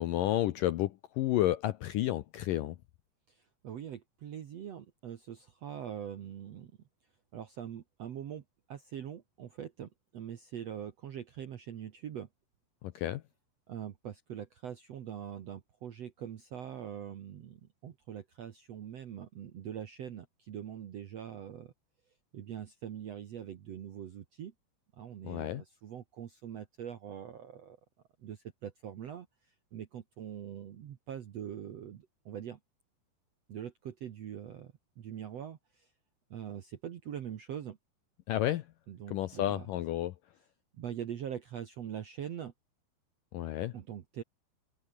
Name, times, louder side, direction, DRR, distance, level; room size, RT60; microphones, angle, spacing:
voice 1, 0.0-2.8 12.8-13.2 25.2-25.6 38.3-38.7 39.1-40.1 43.3-43.7, left 14 dB, 75° left, 2.0 m, -31 dB
voice 2, 3.6-6.7 7.3-8.4 8.7-12.3 13.7-21.7 22.3-24.5 25.0-27.8 28.2-29.3 29.7-32.6 33.5-35.6 36.3-37.8 38.9-39.7 40.8-42.5 43.7-44.2, right 9 dB, 65° right, 1.6 m, -43 dB
omnidirectional pair, 4.8 m